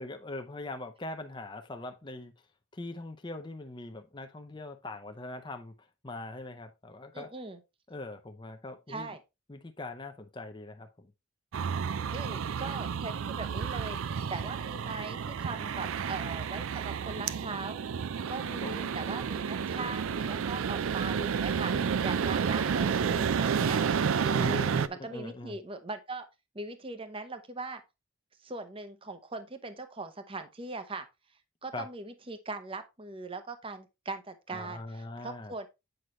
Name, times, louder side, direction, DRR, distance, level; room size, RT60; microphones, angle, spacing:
voice 1, 0.0-2.3 2.7-7.3 7.9-9.2 9.5-11.1 18.6-18.9 21.7-21.9 22.5-22.8 24.3-25.6 31.7-31.9 34.5-35.5, left 2 dB, 20° left, 0.6 m, -42 dB
voice 2, 7.1-7.6 8.9-9.2 12.1-17.8 18.3-21.7 22.0-23.8 24.2-26.3 26.5-27.8 28.4-31.1 31.6-35.7, right 3 dB, 25° right, 0.7 m, -40 dB
sound 1, 11.5-24.9, right 6 dB, 75° right, 0.4 m, -31 dB
7.8 x 5.4 x 3.1 m
head